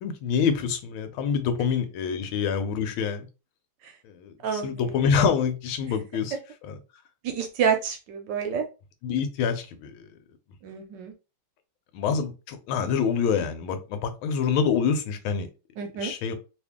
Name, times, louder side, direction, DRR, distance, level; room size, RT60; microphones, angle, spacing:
voice 1, 0.0-3.3 4.0-6.4 6.6-6.7 9.0-10.1 11.9-15.5 16.0-16.3, left 6 dB, 80° left, 1.5 m, -26 dB
voice 2, 4.4-5.0 6.3-6.4 7.2-8.7 10.6-11.1 15.8-16.1, right 7 dB, 70° right, 1.1 m, -28 dB
3.2 x 2.5 x 3.5 m
omnidirectional pair, 2.3 m